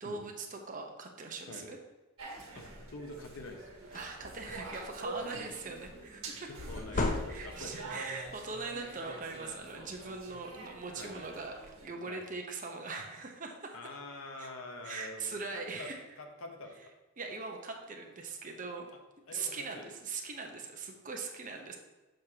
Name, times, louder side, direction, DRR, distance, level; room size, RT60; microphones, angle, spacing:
voice 1, 0.0-1.8 3.9-6.5 6.9-13.7 14.4-14.5 14.8-16.0 17.2-18.9 19.3-21.8, right 4 dB, 40° right, 3 dB, 0.8 m, -41 dB
sound 1, 2.2-11.9, right 2 dB, 75° right, 1.4 m, -46 dB
voice 2, 2.5-3.8 5.1-5.4 6.3-7.7 10.9-11.1 12.1-12.2 13.7-16.9 19.3-19.9, left 2 dB, 75° left, 4 dB, 0.9 m, -46 dB
sound 2, 2.6-2.9 3.4-3.5 3.8-4.9 6.6-7.8, left 2 dB, 40° left, 0.6 m, -35 dB
6.5 x 6.3 x 2.9 m, 1.1 s
head